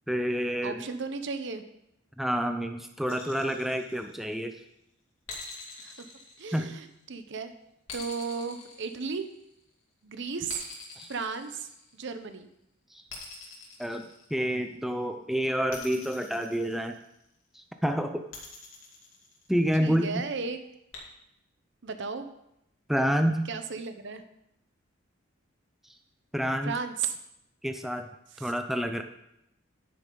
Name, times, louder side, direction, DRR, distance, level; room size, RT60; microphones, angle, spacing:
voice 1, 0.1-0.8 2.2-4.6 6.5-6.8 11.0-11.1 12.9-13.0 13.8-14.1 14.3-17.0 17.5-18.3 19.5-20.1 22.9-23.5 26.3-26.7 27.6-28.1 28.4-29.0, equal, ahead, 6 dB, 0.5 m, -28 dB
voice 2, 0.6-1.6 5.8-6.1 6.4-7.5 7.9-9.3 10.0-10.6 11.1-12.5 19.8-20.6 21.8-22.3 23.5-24.2 26.6-27.2 28.3-28.5, right 5 dB, 60° right, 9 dB, 0.8 m, -35 dB
sound 1, 3.1-4.5 5.3-7.1 7.9-9.6 10.5-12.2 13.1-14.7 15.7-17.2 18.3-19.8 20.9-21.0, left 4 dB, 70° left, 2.7 m, -45 dB
10.0 x 9.7 x 3.9 m, 0.81 s
head